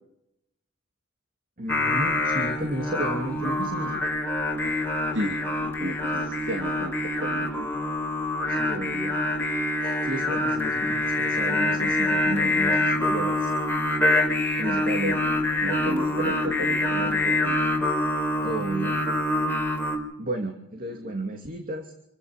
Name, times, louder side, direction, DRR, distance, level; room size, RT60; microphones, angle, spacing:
voice 1, 1.6-4.0 6.1-6.3 8.5-9.1 9.8-13.5 14.6-15.2 18.4-19.0 20.2-21.9, right 1 dB, 50° right, 4 dB, 2.7 m, -32 dB
Singing, 1.7-20.0, left 2 dB, 10° left, 4.5 m, -25 dB
voice 2, 5.1-6.9 7.2-7.7 15.2-17.6 21.0-21.2, right 1 dB, 75° right, 5 dB, 2.4 m, -34 dB
27.5 x 15.5 x 6.8 m, 0.79 s
head